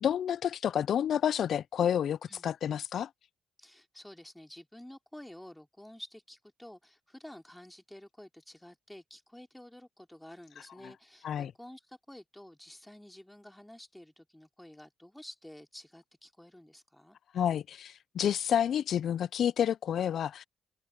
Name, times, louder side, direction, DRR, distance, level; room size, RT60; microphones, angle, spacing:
voice 1, 0.0-2.2 2.4-3.1 11.2-11.5 17.3-20.4, left 9 dB, 65° left, 0.4 m, -29 dB
voice 2, 3.6-17.2, left 1 dB, 5° left, 3.1 m, -51 dB
open air
cardioid pair, 90°, 0 cm